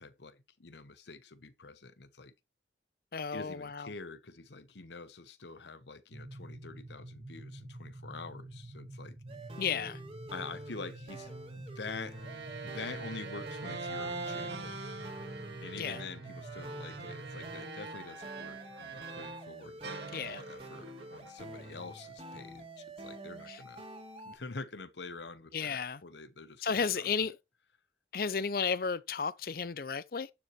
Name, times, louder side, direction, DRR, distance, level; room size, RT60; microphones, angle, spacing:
voice 1, 0.0-2.3 3.3-9.2 10.3-12.2 12.6-14.8 15.6-23.9 24.2-27.1, left 4 dB, 75° left, 1.0 m, -46 dB
voice 2, 3.1-3.9 9.6-10.0 15.8-16.0 20.1-20.5 23.5-23.6 25.5-26.0 26.6-27.4 28.1-30.3, left 6 dB, 55° left, 0.5 m, -33 dB
sound 1, 6.1-17.6, right 1 dB, 45° right, 1.4 m, -48 dB
sound 2, 9.3-24.4, right 1 dB, 30° right, 2.2 m, -47 dB
sound 3, 12.1-19.5 19.8-22.2, right 4 dB, 80° right, 1.9 m, -44 dB
11.5 x 7.1 x 3.1 m
head